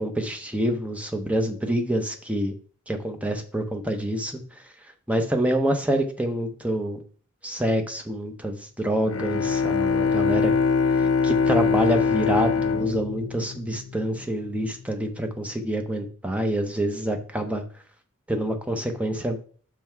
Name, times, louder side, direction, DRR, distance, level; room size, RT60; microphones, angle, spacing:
voice 1, 0.0-2.5 2.9-4.4 5.1-7.0 7.4-10.5 11.2-17.6 18.3-19.4, right 1 dB, 5° right, 4 dB, 0.9 m, -26 dB
Bowed string instrument, 9.1-14.2, left 5 dB, 75° left, 0.7 m, -23 dB
6.1 x 5.7 x 4.6 m, 0.43 s
head